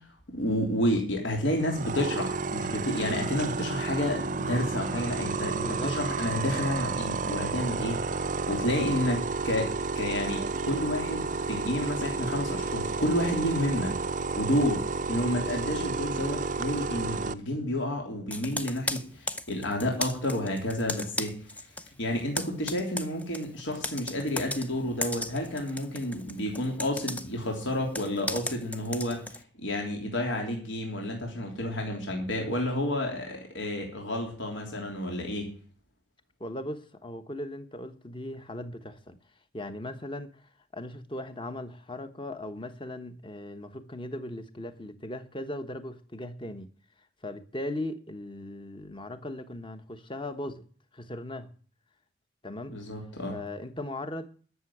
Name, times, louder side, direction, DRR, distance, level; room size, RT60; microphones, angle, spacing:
voice 1, 0.3-13.9 14.4-21.4 22.0-29.2 29.6-35.5 52.7-53.4, left 1 dB, 75° left, 3.3 m, -30 dB
sound 1, 1.6-17.3, right 4 dB, 40° right, 0.5 m, -31 dB
voice 2, 5.6-6.0 15.2-15.4 36.4-39.2 39.5-46.7 47.2-50.6 50.9-51.5 52.4-52.9 53.3-54.3, left 1 dB, 25° left, 1.1 m, -38 dB
Computer keyboard, 18.3-21.9 22.2-29.4, left 2 dB, 10° left, 0.6 m, -36 dB
13.0 x 6.9 x 8.6 m
head